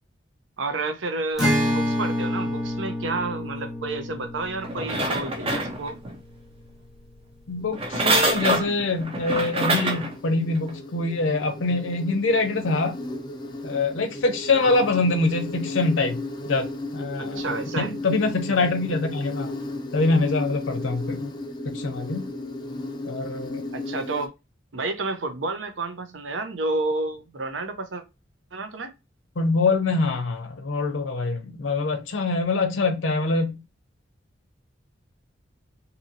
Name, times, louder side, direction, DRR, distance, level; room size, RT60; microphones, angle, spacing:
voice 1, 0.6-6.0 14.6-14.8 17.2-17.9 23.7-24.3 24.7-28.0 28.5-28.9, right 3 dB, 80° right, 0.7 m, -30 dB
Acoustic guitar, 1.4-6.9, equal, ahead, 1.0 m, -28 dB
sound 1, 4.6-6.2 7.7-10.1 10.7-10.8, right 2 dB, 30° right, 0.5 m, -25 dB
voice 2, 7.5-13.0 13.6-16.2 16.5-16.7 16.9-17.4 17.8-19.5 19.9-21.3 21.6-22.3 23.0-23.6 29.4-33.6, left 3 dB, 80° left, 0.6 m, -24 dB
Insect, 7.6-24.3, left 2 dB, 20° left, 0.4 m, -35 dB
2.7 x 2.7 x 2.7 m
head